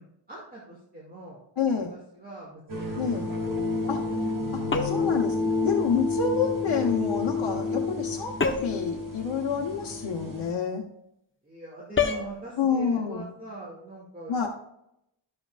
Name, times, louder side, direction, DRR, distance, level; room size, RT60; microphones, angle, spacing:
voice 1, 0.0-1.4 1.9-3.7 4.4-4.5 7.4-7.6 11.4-14.4, right 2 dB, 20° right, -6 dB, 2.4 m, -43 dB
voice 2, 1.6-1.9 3.0-3.3 3.9-4.0 4.5-5.3 5.6-10.9 12.6-13.3 14.3-14.5, left 6 dB, 60° left, -2 dB, 1.2 m, -28 dB
sound 1, 2.7-10.5, left 3 dB, 45° right, 2.1 m, -30 dB
sound 2, 4.7-5.2 8.4-8.9 12.0-12.3, left 5 dB, 25° left, 1.0 m, -26 dB
11.5 x 7.8 x 2.5 m, 0.80 s
wide cardioid pair, 120°, 47 cm